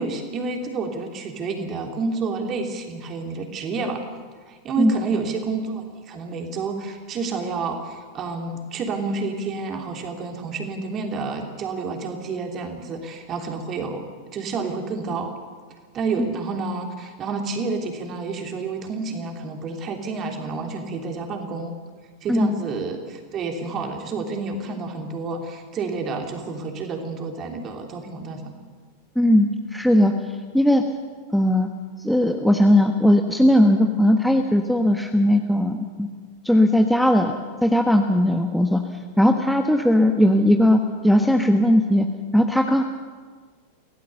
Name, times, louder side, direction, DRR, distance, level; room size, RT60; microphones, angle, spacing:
voice 1, 0.0-4.0 4.5-15.3 15.9-21.7 22.2-28.6, right 4 dB, 30° right, 3 dB, 3.3 m, -29 dB
voice 2, 29.2-30.1 30.5-30.8 31.3-31.7 32.0-36.1 36.4-38.8 39.2-42.1 42.3-42.8, left 1 dB, ahead, 4 dB, 1.3 m, -18 dB
25.0 x 17.0 x 6.9 m, 1.5 s
figure-of-eight pair, 90°, 0 cm